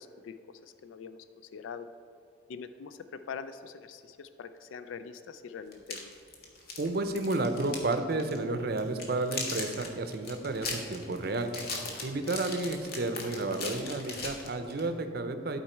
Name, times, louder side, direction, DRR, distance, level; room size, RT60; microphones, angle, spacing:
voice 1, 0.0-1.9 2.5-6.1 13.3-13.5, left 6 dB, 80° left, 10 dB, 0.3 m, -44 dB
sound 1, 5.7-7.9 8.2-8.4 8.8-14.9, left 3 dB, 50° left, 1.2 m, -38 dB
voice 2, 6.8-11.5 12.0-15.6, right 2 dB, 55° right, 8 dB, 0.6 m, -31 dB
12.0 x 4.5 x 4.4 m, 2.6 s
head